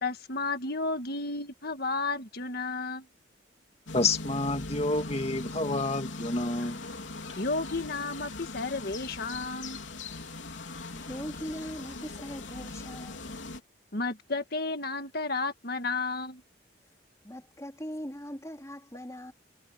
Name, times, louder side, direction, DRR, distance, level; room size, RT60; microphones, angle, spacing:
voice 1, 0.0-3.1 7.4-9.8 13.9-16.4, left 3 dB, 50° left, 1.8 m, -32 dB
sound 1, 3.9-13.6, left 3 dB, 65° left, 3.7 m, -40 dB
voice 2, 3.9-6.8, left 2 dB, 30° left, 2.3 m, -29 dB
voice 3, 10.9-13.4 17.2-19.3, equal, 15° left, 4.0 m, -40 dB
head